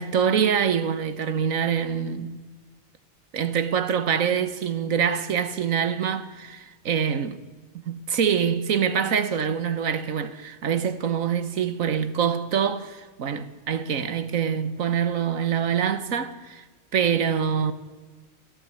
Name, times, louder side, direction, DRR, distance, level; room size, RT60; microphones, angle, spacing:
voice 1, 0.0-2.5 3.3-7.4 7.7-16.6 16.9-17.7, right 7 dB, 75° right, 1.5 m, -25 dB
28.0 x 13.0 x 9.4 m
omnidirectional pair, 1.4 m